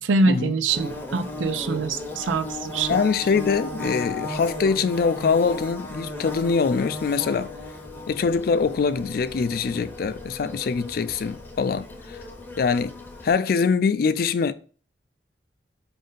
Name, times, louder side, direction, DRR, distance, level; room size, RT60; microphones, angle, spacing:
voice 1, 0.0-3.0, right 3 dB, 90° right, 0.5 m, -24 dB
Bird / Buzz, 0.7-13.3, left 2 dB, 10° left, 0.6 m, -36 dB
voice 2, 2.9-7.5 8.1-12.2 12.6-13.0 13.2-14.5, left 5 dB, 50° left, 0.3 m, -23 dB
5.2 x 2.6 x 3.7 m
head